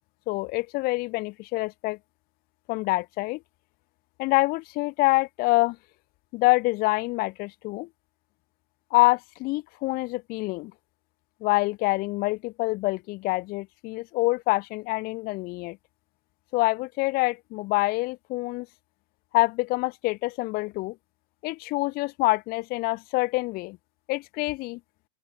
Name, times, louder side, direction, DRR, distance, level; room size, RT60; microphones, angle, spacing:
voice 1, 0.3-2.0 2.7-3.4 4.2-5.8 6.3-7.9 8.9-10.7 11.4-15.8 16.5-18.7 19.3-21.0 21.4-23.8 24.1-24.8, left 22 dB, 30° left, 2.0 m, -26 dB
open air
supercardioid pair, 165°, 31 cm